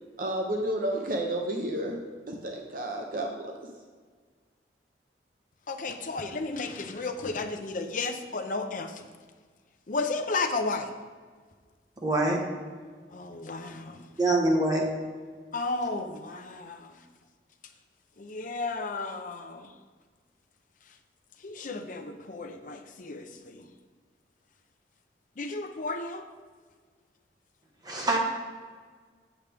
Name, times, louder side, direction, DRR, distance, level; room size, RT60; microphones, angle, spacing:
voice 1, 0.2-2.0 2.3-3.5, right 1 dB, 50° right, 1 dB, 0.8 m, -31 dB
voice 2, 5.7-9.1 9.9-10.9 13.1-14.1 15.5-17.0 18.2-19.7 21.4-23.7 25.4-26.3, left 3 dB, 45° left, 6 dB, 0.7 m, -33 dB
voice 3, 12.0-12.5 14.2-14.9 27.8-28.2, right 2 dB, 20° right, -1 dB, 1.3 m, -24 dB
8.1 x 7.3 x 3.4 m, 1.6 s
head